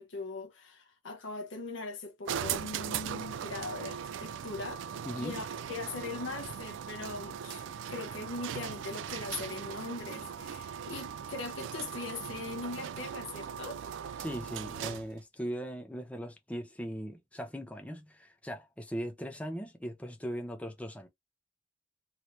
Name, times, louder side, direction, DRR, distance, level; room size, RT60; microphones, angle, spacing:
voice 1, 0.0-4.8 5.2-14.1, left 3 dB, 80° left, 1.0 m, -41 dB
sound 1, 2.3-15.2, right 8 dB, 75° right, 0.3 m, -39 dB
voice 2, 5.1-5.4 14.2-21.1, equal, 5° left, 0.6 m, -39 dB
3.1 x 2.8 x 3.1 m
head